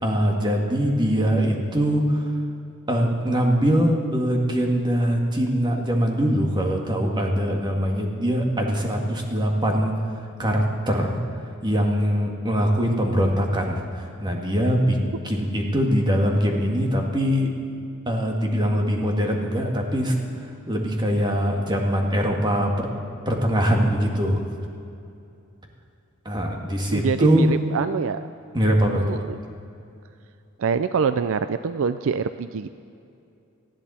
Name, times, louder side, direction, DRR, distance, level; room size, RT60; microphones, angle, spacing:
voice 1, 0.0-2.2 2.9-9.9 10.4-11.2 11.6-15.0 15.2-17.5 18.1-20.2 20.7-22.9 23.3-24.4 26.3-27.5 28.5-29.2, equal, 20° right, 1 dB, 1.9 m, -22 dB
voice 2, 26.9-28.3 29.0-29.4 30.6-32.7, right 5 dB, 65° right, 11 dB, 0.4 m, -25 dB
19.0 x 14.0 x 4.3 m, 2.6 s
head